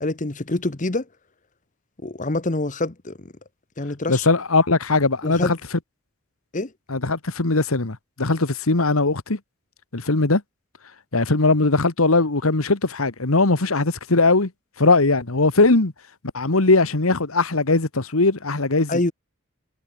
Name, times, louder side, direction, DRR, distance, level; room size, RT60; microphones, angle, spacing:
voice 1, 0.0-1.0 2.0-3.2 3.8-4.3 5.2-5.5 6.5-6.7 18.9-19.1, left 2 dB, 40° left, 1.2 m, -25 dB
voice 2, 4.1-5.6 6.9-9.4 9.9-10.4 11.1-14.5 14.8-15.9 16.3-19.0, left 3 dB, 90° left, 1.7 m, -20 dB
head